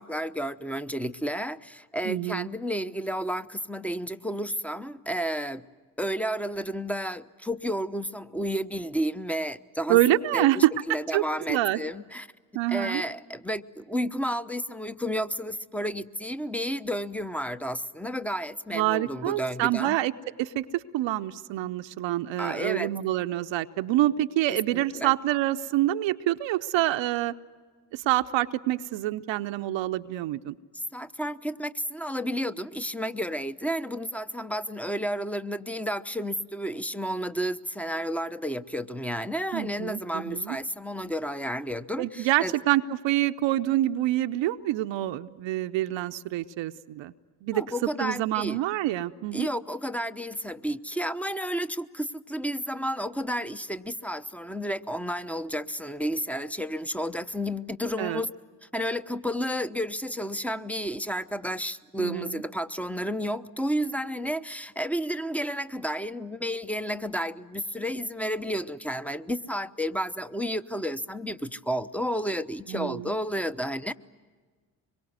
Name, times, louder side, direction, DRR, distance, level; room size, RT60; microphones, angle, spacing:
voice 1, 0.0-5.6 6.0-12.3 12.7-20.0 22.4-22.9 24.5-25.1 30.9-42.5 47.5-48.6 49.3-58.3 58.7-73.9, equal, 5° left, 13 dB, 0.9 m, -31 dB
voice 2, 2.0-2.5 9.9-10.7 11.1-11.8 12.5-13.0 18.7-20.1 20.4-27.3 27.9-30.6 39.5-40.6 42.0-47.1 47.4-47.6 48.0-49.5 58.0-58.2 62.0-62.4 72.7-73.1, right 15 dB, 65° right, 9 dB, 0.8 m, -26 dB
25.5 x 23.0 x 9.5 m, 1.5 s
hypercardioid pair, 40°, 49 cm